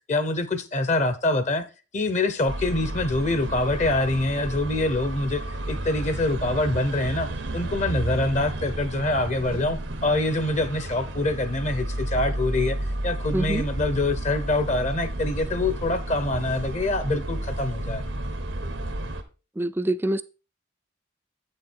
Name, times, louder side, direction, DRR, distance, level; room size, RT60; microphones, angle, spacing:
voice 1, 0.1-1.6 1.9-5.4 5.7-12.8 13.0-18.0, left 2 dB, 40° left, 0.8 m, -25 dB
sound 1, 2.5-19.2, right 1 dB, 90° right, 1.2 m, -32 dB
voice 2, 13.3-13.6 19.6-20.2, right 1 dB, 10° right, 0.3 m, -25 dB
8.1 x 6.5 x 4.3 m
head